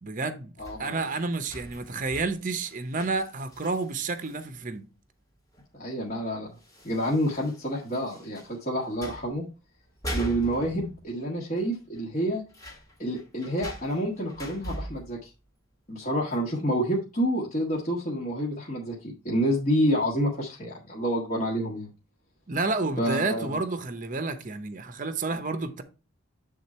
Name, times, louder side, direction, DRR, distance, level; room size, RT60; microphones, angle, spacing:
voice 1, 0.0-0.5 0.8-4.9 22.5-25.8, right 3 dB, 35° right, 0.7 m, -30 dB
voice 2, 0.6-1.0 5.7-6.5 6.8-9.4 10.1-12.4 13.0-15.3 15.9-21.9 23.0-23.6, equal, 35° left, 1.4 m, -28 dB
sound 1, 0.6-4.5 5.5-5.6 6.0-6.1 6.6-8.6 8.9-9.4 9.8-11.3 11.6-11.7 11.9-15.2 16.3-16.4, equal, 15° left, 1.5 m, -41 dB
8.5 x 3.7 x 4.2 m
head